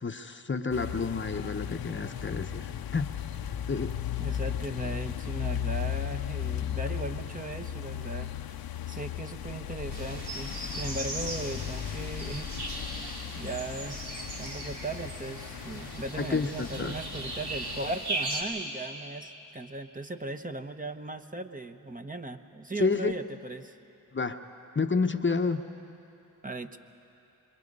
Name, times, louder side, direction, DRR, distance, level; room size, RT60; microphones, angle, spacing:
voice 1, 0.0-3.1 3.7-3.9 16.2-16.9 22.8-23.1 24.1-24.4 24.7-25.7, left 4 dB, 30° left, 8 dB, 0.9 m, -29 dB
sound 1, 0.7-18.0, left 9 dB, 65° left, 0.8 m, -36 dB
voice 2, 4.2-8.3 8.9-12.7 13.4-14.0 14.4-23.8 26.4-26.8, right 2 dB, 20° right, 7 dB, 1.1 m, -38 dB
sound 2, 9.9-18.4, right 2 dB, 80° right, 2.9 m, -38 dB
26.5 x 22.0 x 5.4 m, 2.9 s
supercardioid pair, 40°, 39 cm